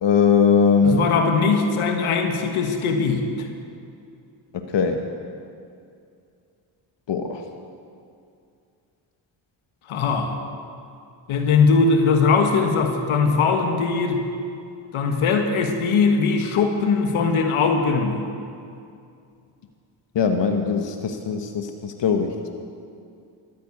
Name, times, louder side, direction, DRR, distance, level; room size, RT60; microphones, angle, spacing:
voice 1, 0.0-1.1 4.5-5.1 7.1-7.4 20.1-22.5, left 6 dB, 60° left, 5 dB, 1.3 m, -20 dB
voice 2, 0.8-3.5 9.9-10.4 11.3-14.2 14.9-18.2, left 4 dB, 80° left, 5 dB, 1.5 m, -20 dB
13.0 x 10.0 x 8.5 m, 2.5 s
supercardioid pair, 50°, 49 cm